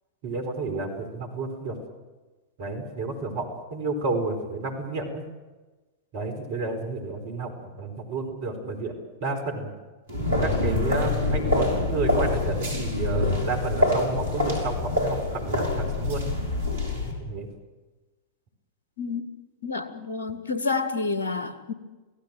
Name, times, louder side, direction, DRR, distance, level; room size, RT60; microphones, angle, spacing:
voice 1, 0.2-1.8 2.6-5.2 6.1-9.7 10.4-16.2 17.2-17.5, right 3 dB, 50° right, 5 dB, 4.7 m, -31 dB
sound 1, 10.1-17.1, left 2 dB, 70° right, 5.5 m, -25 dB
voice 2, 19.6-21.7, left 4 dB, 70° left, 10 dB, 1.9 m, -29 dB
27.0 x 16.5 x 7.8 m, 1.2 s
figure-of-eight pair, 90°, 0 cm